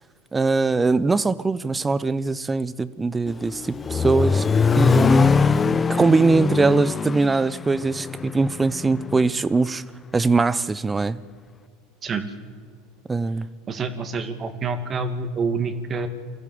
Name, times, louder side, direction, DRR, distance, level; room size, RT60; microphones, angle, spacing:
voice 1, 0.3-4.5 4.8-5.5 5.9-9.8 10.1-11.2 13.1-13.5, right 3 dB, 20° right, 18 dB, 0.9 m, -21 dB
Accelerating revving vroom, 3.3-9.3, left 5 dB, 25° left, 0.7 m, -22 dB
voice 2, 13.7-16.1, right 4 dB, 35° right, 9 dB, 2.3 m, -27 dB
24.0 x 15.5 x 7.9 m, 2.1 s
hypercardioid pair, 80°, 0 cm